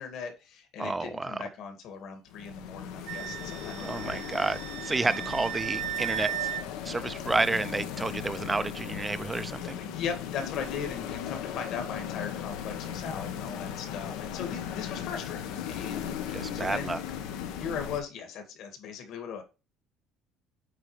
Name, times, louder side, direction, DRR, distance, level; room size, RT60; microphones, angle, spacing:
voice 1, 0.0-4.3 5.0-5.3 9.6-17.0 17.6-19.4, left 6 dB, 60° left, 2.1 m, -38 dB
voice 2, 0.8-1.4 3.8-6.5 6.8-9.8 16.3-17.0, right 3 dB, 15° right, 0.5 m, -30 dB
sound 1, 2.3-18.0, left 9 dB, 90° left, 1.1 m, -37 dB
Wind instrument woodwind instrument, 3.1-6.6, right 14 dB, 60° right, 0.6 m, -36 dB
8.3 x 4.1 x 3.3 m
cardioid pair, 145°, 0 cm